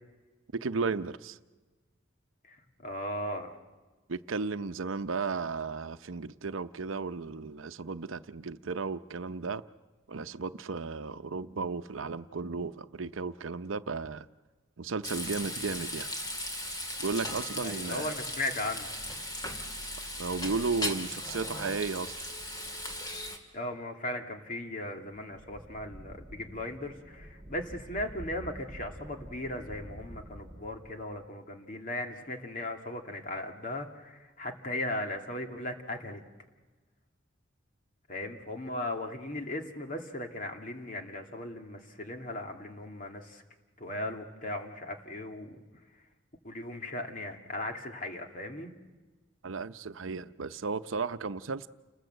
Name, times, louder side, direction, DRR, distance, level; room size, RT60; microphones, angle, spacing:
voice 1, 0.5-1.4 4.1-9.6 10.1-14.3 14.8-16.1 17.0-18.1 20.2-22.1 49.4-51.7, right 4 dB, 90° right, 0.7 m, -34 dB
voice 2, 2.4-3.6 17.6-18.9 23.5-36.2 38.1-43.4 43.8-45.6 46.4-48.7, left 1 dB, 45° left, 2.5 m, -37 dB
Frying (food), 15.0-23.4, left 1 dB, 20° left, 2.3 m, -37 dB
sound 1, 25.1-31.3, right 1 dB, 30° right, 1.6 m, -48 dB
29.5 x 20.0 x 7.9 m
head